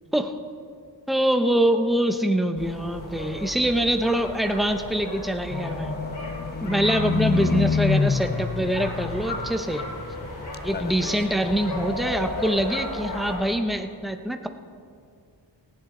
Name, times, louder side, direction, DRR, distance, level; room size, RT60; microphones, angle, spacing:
voice 1, 1.1-5.9 6.6-9.8 10.6-14.5, right 1 dB, ahead, 6 dB, 0.7 m, -24 dB
sound 1, 2.5-13.4, left 1 dB, 80° left, 5.0 m, -35 dB
Livestock farm animals working animals, 5.5-10.3 10.5-11.2 11.7-11.8, left 6 dB, 25° left, 0.3 m, -27 dB
19.0 x 15.5 x 3.8 m, 2.3 s
wide cardioid pair, 145°, 45 cm